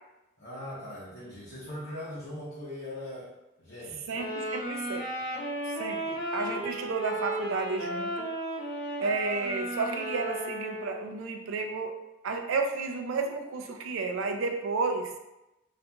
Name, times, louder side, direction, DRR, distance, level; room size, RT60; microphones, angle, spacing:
voice 1, 0.4-3.3 3.6-4.0, left 1 dB, 50° left, -9 dB, 0.7 m, -40 dB
sound 1, 4.1-11.2, right 1 dB, 30° left, 1.0 m, -34 dB
voice 2, 4.1-5.1 5.7-8.3 9.0-12.0 12.2-15.1, right 4 dB, 70° right, 4 dB, 0.4 m, -32 dB
2.8 x 2.4 x 2.2 m, 0.95 s
head